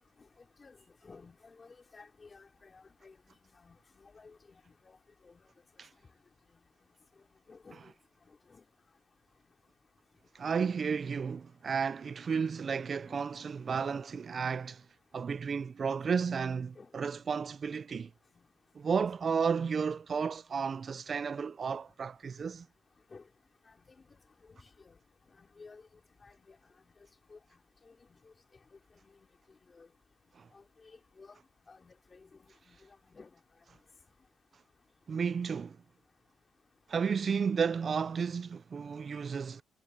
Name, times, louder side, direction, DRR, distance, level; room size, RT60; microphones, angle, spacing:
voice 1, 1.0-4.4 4.7-5.0 5.2-5.4 7.5-7.9 8.5-8.6 10.6-10.7 13.1-13.2 13.7-14.0 16.8-16.9 18.4-18.5 23.1-23.2 23.7-23.8 24.1-24.2 24.5-24.6 24.8-25.0 25.4-25.8 26.2-26.6 27.3-27.4 27.9-28.2 29.0-29.1 29.7-29.9 30.5-31.4 31.7-32.8 33.0-33.4 33.7-33.8, left 4 dB, 30° left, 4.2 m, -55 dB
voice 2, 10.3-14.0 14.3-14.8 15.1-18.1 18.8-22.7 30.4-30.5 35.1-35.8 36.9-39.6, right 6 dB, 45° right, 0.4 m, -32 dB
cardioid pair, 90°, 0 cm